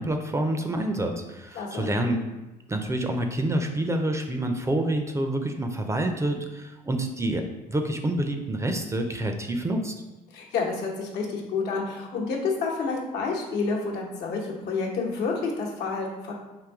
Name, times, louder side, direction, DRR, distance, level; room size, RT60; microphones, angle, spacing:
voice 1, 0.0-2.2 2.7-9.9, right 1 dB, 15° right, 5 dB, 0.4 m, -27 dB
voice 2, 1.5-1.9 10.3-16.3, left 4 dB, 80° left, -1 dB, 1.0 m, -29 dB
3.8 x 2.6 x 4.7 m, 1.1 s
cardioid pair, 110°, 17 cm